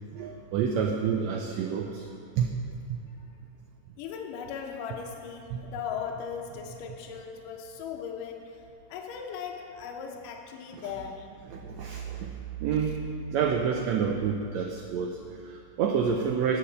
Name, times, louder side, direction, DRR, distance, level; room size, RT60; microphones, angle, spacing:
voice 1, 0.1-2.1 2.4-2.5 2.9-3.0 10.7-10.8 11.5-13.0 13.3-16.6, right 7 dB, 90° right, 2 dB, 1.5 m, -28 dB
voice 2, 4.0-8.6 8.9-11.3 12.8-12.9, left 7 dB, 85° left, 2 dB, 2.3 m, -38 dB
9.2 x 6.8 x 6.5 m, 2.5 s
omnidirectional pair, 3.7 m